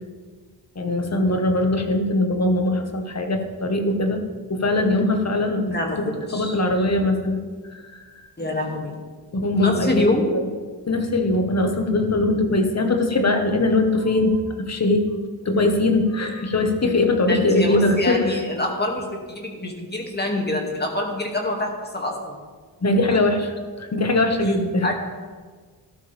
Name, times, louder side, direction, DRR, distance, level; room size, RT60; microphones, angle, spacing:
voice 1, 0.8-4.2 4.5-7.4 7.7-8.0 9.3-10.1 10.9-15.1 15.5-18.4 22.8-24.9, left 2 dB, 40° left, 5 dB, 1.6 m, -21 dB
voice 2, 5.7-6.5 8.4-9.0 9.6-10.3 15.5-15.6 17.3-22.4 24.5-24.6 24.8-24.9, left 2 dB, 25° left, 0 dB, 2.4 m, -25 dB
13.5 x 12.0 x 3.6 m, 1.5 s
cardioid pair, 75°, 40 cm